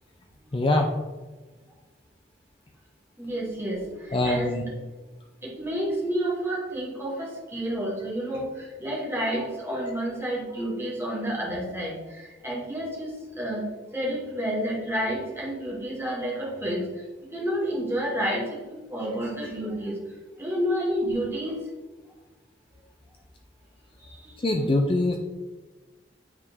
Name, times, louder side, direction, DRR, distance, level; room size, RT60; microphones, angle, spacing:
voice 1, 0.5-0.9 4.1-4.6 24.4-25.2, left 1 dB, 30° left, 3 dB, 0.5 m, -23 dB
voice 2, 3.2-4.7 5.4-17.0 17.3-20.0 20.4-21.6 24.0-24.3, equal, 15° right, -3 dB, 1.8 m, -30 dB
9.4 x 3.6 x 3.6 m, 1.2 s
head